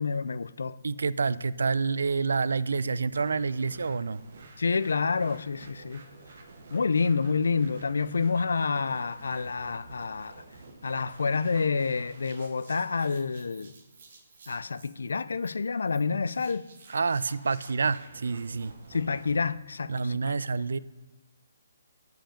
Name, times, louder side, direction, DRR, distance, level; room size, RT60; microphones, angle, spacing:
voice 1, 0.0-0.8 4.6-6.0 6.7-10.4 10.8-13.7 14.5-16.6 18.9-20.3, left 4 dB, 80° left, 0.3 m, -28 dB
voice 2, 0.8-4.2 16.9-18.7 19.9-20.8, right 4 dB, 80° right, 0.3 m, -28 dB
sound 1, 3.1-19.4, right 3 dB, 55° right, 1.4 m, -51 dB
7.7 x 5.0 x 5.1 m
hypercardioid pair, 160°, 0 cm